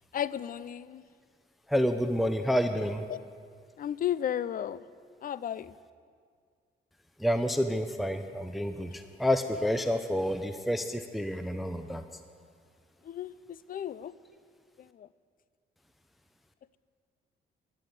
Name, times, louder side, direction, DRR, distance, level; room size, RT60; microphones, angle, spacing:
voice 1, 0.1-1.0 3.1-3.2 3.8-4.8 5.2-5.7 13.0-14.1 14.8-15.1, left 10 dB, 45° left, 18 dB, 0.4 m, -34 dB
voice 2, 1.7-3.0 7.2-12.0, equal, ahead, 8 dB, 0.6 m, -29 dB
11.5 x 10.5 x 7.7 m, 2.1 s
cardioid pair, 90°, 20 cm